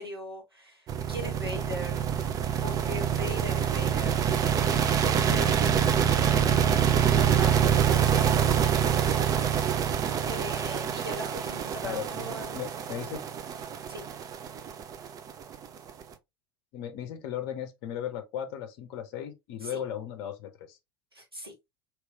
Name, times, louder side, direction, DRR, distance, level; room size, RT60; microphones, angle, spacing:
voice 1, 0.0-2.0 2.6-4.2 5.0-9.1 10.2-12.6 13.9-14.1 19.6-19.8 21.1-21.5, equal, 85° right, 1.5 m, -40 dB
sound 1, 0.9-16.0, right 8 dB, 30° right, 0.5 m, -26 dB
voice 2, 11.8-13.3 16.7-20.8, left 9 dB, 50° left, 0.7 m, -36 dB
3.2 x 3.0 x 3.1 m
figure-of-eight pair, 75°, 12 cm